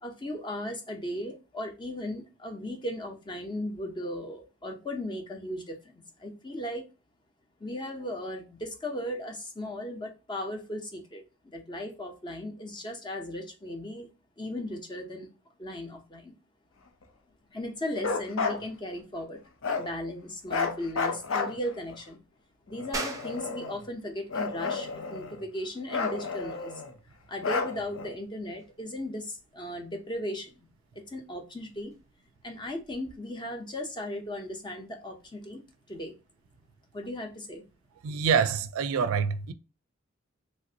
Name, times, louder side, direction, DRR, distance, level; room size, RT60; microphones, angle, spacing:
voice 1, 0.0-6.8 7.6-14.1 14.4-15.3 15.6-16.3 17.5-19.4 19.8-22.2 22.7-26.7 27.3-30.5 30.9-31.9 32.4-35.6 35.9-36.1 36.9-37.6, left 1 dB, 20° left, 0.6 m, -37 dB
Bark, 18.0-18.6 19.6-19.9 20.5-21.9 22.7-23.8 24.3-25.4 25.9-26.9 27.4-28.1, left 4 dB, 65° left, 0.6 m, -31 dB
sound 1, 22.9-33.2, right 2 dB, 15° right, 0.6 m, -46 dB
voice 2, 38.0-39.5, right 6 dB, 80° right, 0.3 m, -26 dB
3.2 x 2.5 x 2.7 m
head